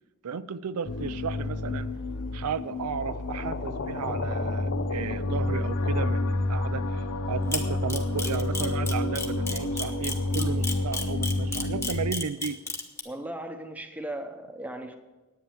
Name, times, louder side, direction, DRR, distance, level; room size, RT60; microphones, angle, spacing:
voice 1, 0.2-1.9 2.3-12.6, right 6 dB, 85° right, 13 dB, 0.5 m, -34 dB
sound 1, 0.9-12.1, left 2 dB, 85° left, 0.8 m, -29 dB
sound 2, 1.3-1.7 3.0-6.1, left 4 dB, 55° left, 0.7 m, -36 dB
Camera, 7.5-13.0, left 2 dB, 10° left, 1.1 m, -31 dB
voice 2, 13.0-15.0, right 1 dB, 5° right, 6 dB, 0.9 m, -37 dB
10.5 x 9.3 x 7.2 m, 1.1 s
head